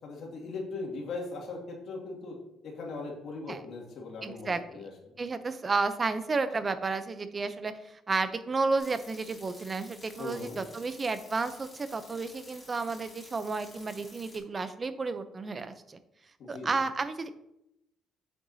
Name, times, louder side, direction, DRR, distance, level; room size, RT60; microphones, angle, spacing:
voice 1, 0.0-2.4 2.6-4.9 10.2-10.6 16.4-16.7, left 3 dB, 65° left, -1 dB, 2.2 m, -39 dB
voice 2, 4.2-4.9 5.2-16.0 16.5-17.3, right 4 dB, 30° right, 11 dB, 0.6 m, -32 dB
sound 1, 8.8-14.4, left 2 dB, 15° left, 2.5 m, -52 dB
7.7 x 6.9 x 2.7 m, 0.83 s
cardioid pair, 120°, 0 cm